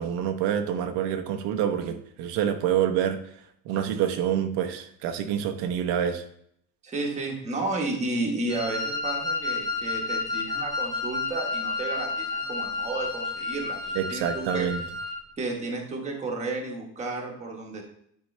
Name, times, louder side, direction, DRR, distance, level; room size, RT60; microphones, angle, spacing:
voice 1, 0.0-3.2 3.6-6.2 13.9-14.8, right 9 dB, 85° right, 6 dB, 1.0 m, -27 dB
voice 2, 6.8-14.7 15.4-17.8, right 2 dB, 15° right, 0 dB, 1.2 m, -32 dB
Wind instrument woodwind instrument, 8.5-15.2, left 4 dB, 10° left, 1.0 m, -31 dB
10.5 x 4.7 x 3.2 m, 0.68 s
cardioid pair, 175°, 40 cm